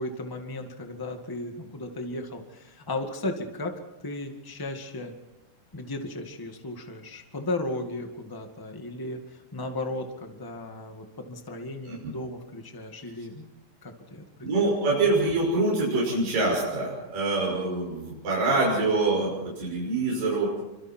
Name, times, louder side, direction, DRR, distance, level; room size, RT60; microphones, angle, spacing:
voice 1, 0.0-3.7 4.0-5.1 5.7-9.2 9.5-13.5 13.8-14.2, left 2 dB, 15° left, 4 dB, 0.7 m, -35 dB
voice 2, 14.4-20.5, right 2 dB, 60° right, -5 dB, 8.0 m, -25 dB
28.0 x 25.5 x 4.6 m, 0.96 s
omnidirectional pair, 4.5 m